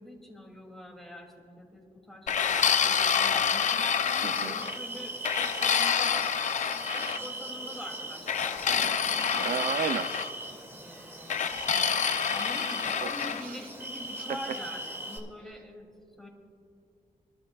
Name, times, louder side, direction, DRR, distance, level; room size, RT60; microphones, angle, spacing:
voice 1, 0.0-6.3 6.9-9.6 10.8-11.9 12.3-15.9 16.2-16.3, left 1 dB, ahead, -1 dB, 2.8 m, -45 dB
sound 1, 2.3-4.8 5.2-7.2 8.3-10.3 11.3-13.4, left 7 dB, 60° left, 0.6 m, -27 dB
sound 2, 3.9-15.2, right 1 dB, 15° right, 2.4 m, -40 dB
voice 2, 4.2-4.5 8.7-10.1 13.0-13.1 13.4-13.6, right 8 dB, 85° right, 11 dB, 0.6 m, -34 dB
24.5 x 12.5 x 2.4 m, 2.4 s
wide cardioid pair, 115°, 14 cm